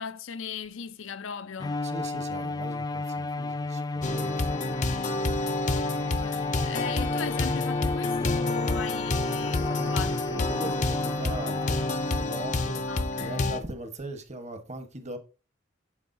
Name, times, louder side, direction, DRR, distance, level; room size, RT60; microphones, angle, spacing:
voice 1, 0.0-1.8 6.2-10.8 12.9-13.5, left 6 dB, 75° left, 0.6 m, -38 dB
Bowed string instrument, 1.6-12.8, left 3 dB, 20° left, 0.3 m, -32 dB
voice 2, 1.8-4.5 9.6-11.7 12.2-15.2, right 2 dB, 35° right, 1.2 m, -40 dB
sound 1, 4.0-13.6, left 2 dB, 40° left, 0.7 m, -29 dB
9.6 x 7.2 x 2.7 m
head